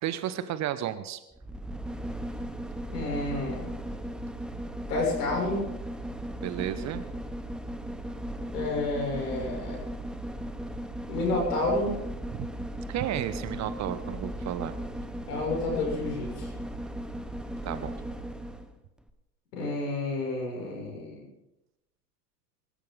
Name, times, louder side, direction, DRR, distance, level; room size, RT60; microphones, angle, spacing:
voice 1, 0.0-1.2 6.4-7.0 12.4-12.5 12.9-14.7 17.6-18.0, right 11 dB, 35° right, 13 dB, 1.0 m, -32 dB
sound 1, 1.3-18.7 19.1-19.2, right 1 dB, ahead, 1.1 m, -37 dB
voice 2, 2.9-3.7 4.9-5.6 8.5-9.8 11.1-12.0 15.3-16.5 19.5-21.2, left 2 dB, 65° left, -1 dB, 7.0 m, -30 dB
23.5 x 13.5 x 4.0 m, 0.92 s
figure-of-eight pair, 75°, 49 cm